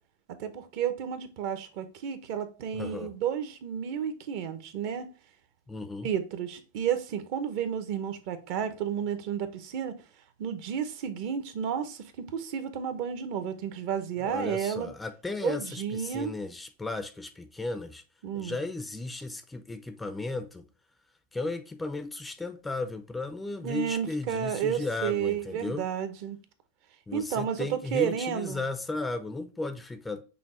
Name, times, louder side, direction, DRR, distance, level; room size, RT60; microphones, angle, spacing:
voice 1, 0.4-5.1 6.0-10.0 10.4-14.9 15.4-16.3 18.2-18.6 23.6-26.4 27.1-28.6, right 8 dB, 55° right, 0.7 m, -32 dB
voice 2, 2.7-3.1 5.7-6.1 14.2-18.0 18.3-20.7 21.3-25.9 27.1-30.2, left 3 dB, 10° left, 0.4 m, -35 dB
5.9 x 2.1 x 3.7 m
supercardioid pair, 130°, 0 cm